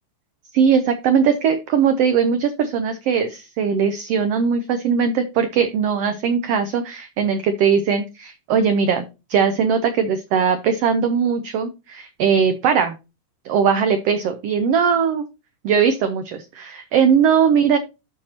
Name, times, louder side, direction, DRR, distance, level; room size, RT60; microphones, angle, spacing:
voice 1, 0.5-12.9 13.4-15.2 15.6-17.8, right 6 dB, 75° right, 8 dB, 1.4 m, -19 dB
13.0 x 4.5 x 2.8 m, 0.27 s
omnidirectional pair, 3.5 m